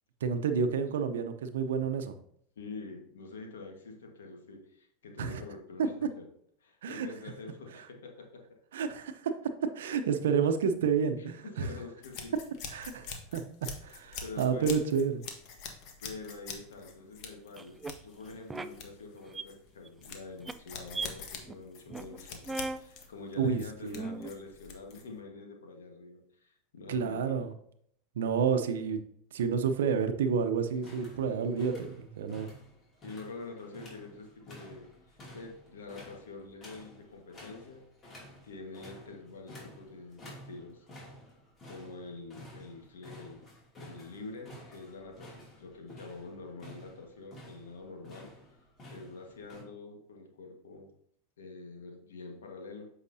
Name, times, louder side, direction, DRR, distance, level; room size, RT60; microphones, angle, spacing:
voice 1, 0.2-2.2 5.2-5.4 5.8-5.9 6.8-7.1 8.7-11.7 12.7-13.4 13.8-15.1 23.4-24.0 26.9-27.5 28.2-29.0 29.3-32.5, right 6 dB, 80° right, 8 dB, 0.8 m, -30 dB
voice 2, 2.5-6.3 6.6-8.4 11.2-12.4 13.6-13.8 14.2-14.8 16.0-27.4 31.4-31.5 33.0-37.8 38.4-40.9 41.6-43.4 43.8-48.3 48.9-50.9 51.4-52.9, left 3 dB, 90° left, 2 dB, 1.5 m, -46 dB
sound 1, 12.0-25.2, left 5 dB, 55° left, 1.4 m, -45 dB
sound 2, 17.6-17.9 18.5-18.7 19.1-19.4 19.9-20.1 20.4-20.5 20.9-21.1 21.4-21.5 21.9-22.2 22.5-22.8 23.4-23.5 23.9-24.3, right 3 dB, 15° right, 0.4 m, -37 dB
sound 3, 30.7-49.6, equal, 30° left, 2.6 m, -52 dB
8.1 x 5.8 x 2.8 m, 0.67 s
hypercardioid pair, 105°, 0 cm